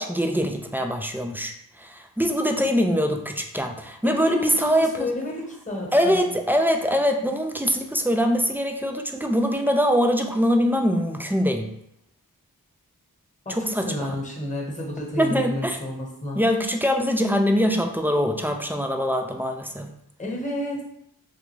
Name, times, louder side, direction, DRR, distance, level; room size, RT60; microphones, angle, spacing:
voice 1, 0.0-5.1 5.9-11.7 13.5-14.1 15.2-15.8 16.4-19.9, equal, 5° right, 4 dB, 0.3 m, -23 dB
voice 2, 4.0-6.3 13.4-16.4 20.2-20.8, left 1 dB, 20° left, -2 dB, 1.1 m, -31 dB
3.4 x 2.5 x 3.0 m, 0.75 s
wide cardioid pair, 45°, 38 cm